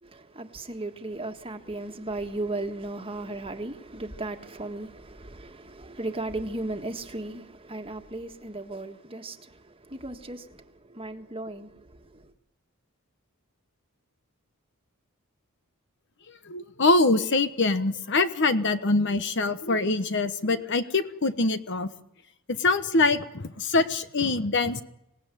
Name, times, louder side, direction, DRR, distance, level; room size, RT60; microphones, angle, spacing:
voice 1, 0.0-12.3, right 2 dB, 25° right, 1.7 m, -36 dB
voice 2, 16.5-21.9 22.5-24.8, left 3 dB, 55° left, 1.2 m, -24 dB
26.0 x 17.5 x 9.2 m
head